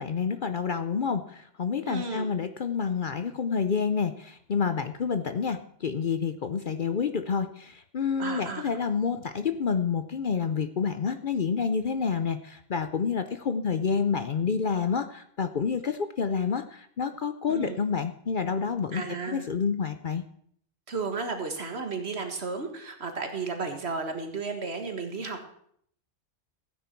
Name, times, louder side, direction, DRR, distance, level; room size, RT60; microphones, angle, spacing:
voice 1, 0.0-20.2, left 6 dB, 50° left, 10 dB, 0.7 m, -28 dB
voice 2, 1.9-2.3 8.2-8.7 17.5-17.8 18.9-19.4 20.9-25.4, right 4 dB, 60° right, 6 dB, 1.8 m, -33 dB
15.5 x 9.3 x 4.5 m, 0.66 s
omnidirectional pair, 1.3 m